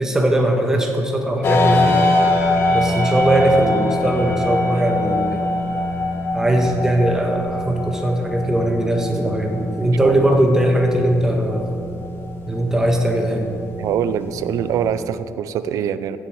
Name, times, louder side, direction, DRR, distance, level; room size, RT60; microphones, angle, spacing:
voice 1, 0.0-2.0 2.7-5.4 6.3-11.7 12.5-13.5, right 1 dB, 10° right, 2 dB, 1.3 m, -19 dB
sound 1, 1.4-15.0, left 2 dB, 40° left, 1.6 m, -23 dB
voice 2, 10.0-10.4 13.8-16.2, right 9 dB, 70° right, 13 dB, 0.5 m, -24 dB
16.0 x 6.9 x 4.8 m, 2.6 s
cardioid pair, 140°, 6 cm